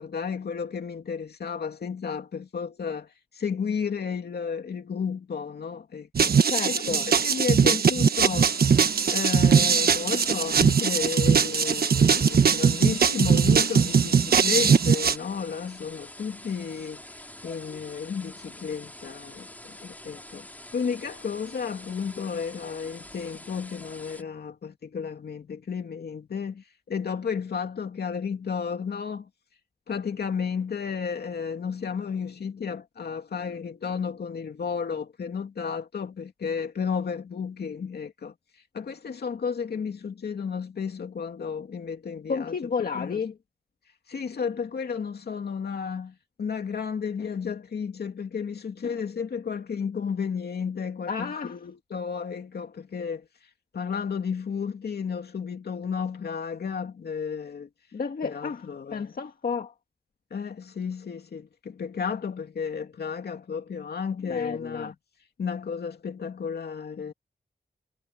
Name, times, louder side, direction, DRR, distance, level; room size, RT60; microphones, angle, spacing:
voice 1, 0.0-3.1 3.3-8.6 9.1-17.0 17.4-20.5 20.7-29.3 29.9-38.3 38.7-43.2 44.1-53.3 53.7-57.7 58.2-59.2 60.3-64.9 65.4-67.1, left 6 dB, 80° left, 2.7 m, -32 dB
sound 1, 6.1-15.1, right 6 dB, 70° right, 1.4 m, -21 dB
voice 2, 6.5-7.1 42.3-43.3 51.1-51.5 57.9-58.6 58.9-59.7 64.3-64.9, left 5 dB, 65° left, 1.8 m, -31 dB
sound 2, 8.2-24.2, left 1 dB, 10° left, 3.7 m, -46 dB
wide cardioid pair, 175°, 17 cm